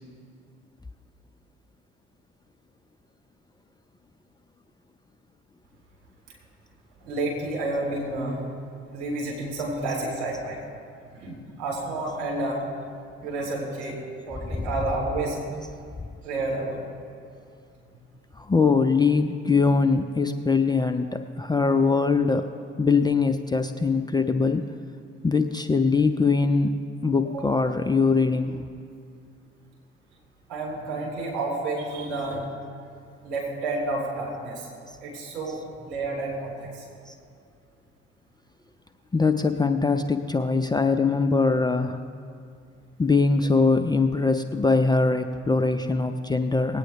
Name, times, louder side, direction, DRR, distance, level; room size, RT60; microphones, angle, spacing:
voice 1, 7.0-8.4 8.9-10.6 11.1-12.7 13.2-14.0 14.3-15.4 16.2-16.9 27.2-27.4 30.5-32.4 33.2-34.7 35.0-36.8, right 2 dB, 60° right, -3 dB, 3.6 m, -30 dB
voice 2, 14.5-15.0 18.4-22.4 22.8-24.6 25.2-26.7 27.0-28.7 35.5-35.6 37.1-37.2 39.1-42.0 43.0-46.8, left 4 dB, 15° left, 6 dB, 0.5 m, -22 dB
19.5 x 9.0 x 3.5 m, 2.4 s
figure-of-eight pair, 50°, 32 cm